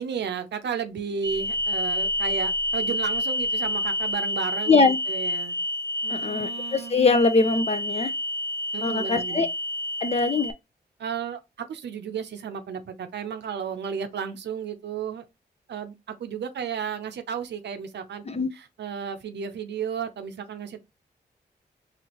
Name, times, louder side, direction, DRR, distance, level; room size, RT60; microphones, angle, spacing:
voice 1, 0.0-5.6 6.0-7.0 8.7-9.5 11.0-15.3 15.7-18.2 18.6-20.8, right 7 dB, 75° right, 0.6 m, -33 dB
sound 1, 1.2-10.5, left 1 dB, 20° right, 0.9 m, -29 dB
voice 2, 4.7-5.0 6.1-8.1 8.8-9.5 10.0-10.5 18.3-18.5, left 3 dB, 35° left, 0.7 m, -22 dB
4.2 x 2.8 x 2.9 m
cardioid pair, 50°, 18 cm